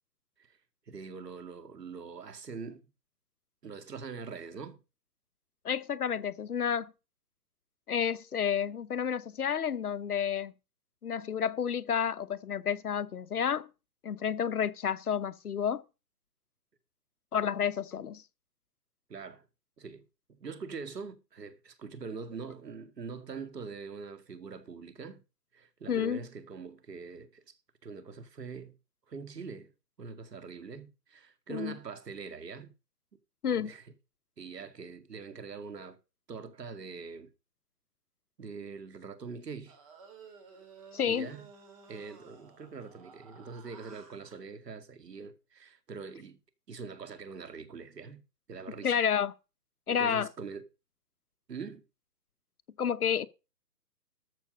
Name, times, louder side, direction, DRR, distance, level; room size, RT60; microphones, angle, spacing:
voice 1, 0.9-2.9 3.6-4.8 19.1-19.5 19.8-20.0 20.4-25.2 25.5-27.6 27.8-28.7 29.1-29.7 30.0-32.7 33.5-33.8 34.4-36.0 36.3-37.3 38.4-39.8 41.0-41.4 41.9-46.4 46.7-48.2 48.5-48.9 49.9-50.6 51.5-51.8, right 5 dB, 75° right, 2.4 m, -43 dB
voice 2, 5.6-6.9 7.9-10.5 11.0-13.7 14.0-15.8 17.3-18.2 25.9-26.2 31.5-31.7 33.4-33.7 40.9-41.3 48.8-49.3 49.9-50.3 52.8-53.3, left 8 dB, 65° left, 1.1 m, -30 dB
sound 1, 39.7-44.4, right 5 dB, 20° right, 2.7 m, -54 dB
13.5 x 5.9 x 6.5 m
hypercardioid pair, 170°, 49 cm